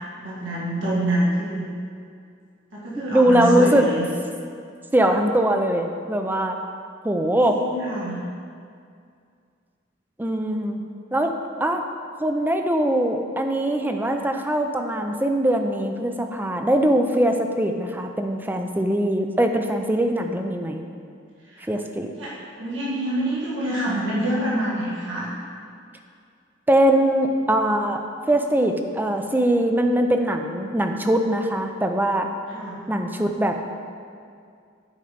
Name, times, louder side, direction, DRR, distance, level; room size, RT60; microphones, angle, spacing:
voice 1, 0.2-1.6 2.7-4.0 7.5-8.2 21.4-21.7 22.1-22.3 22.6-25.3 32.5-32.8, right 1 dB, 80° right, -7 dB, 1.9 m, -26 dB
voice 2, 3.1-3.9 4.9-6.6 7.0-7.6 10.2-10.8 11.1-11.3 11.6-11.8 12.2-20.8 21.7-22.1 26.7-28.0 28.3-32.3 32.9-33.6, right 1 dB, 10° right, 5 dB, 0.5 m, -21 dB
8.6 x 5.1 x 5.1 m, 2.3 s
head